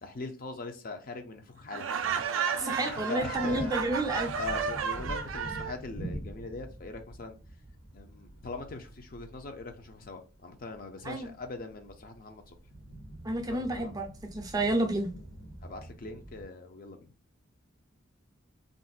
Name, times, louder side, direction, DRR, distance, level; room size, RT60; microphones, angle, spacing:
voice 1, 0.0-3.8 4.4-7.4 7.9-12.6 13.4-14.0 15.6-17.1, left 3 dB, 45° left, 0.5 m, -41 dB
Laughter, 1.7-5.8, right 6 dB, 75° right, 0.4 m, -32 dB
voice 2, 2.6-4.3 11.0-11.3 13.2-15.1, right 2 dB, 20° right, 0.4 m, -30 dB
sound 1, 3.2-16.4, right 1 dB, 75° left, 1.4 m, -45 dB
2.5 x 2.1 x 3.9 m
head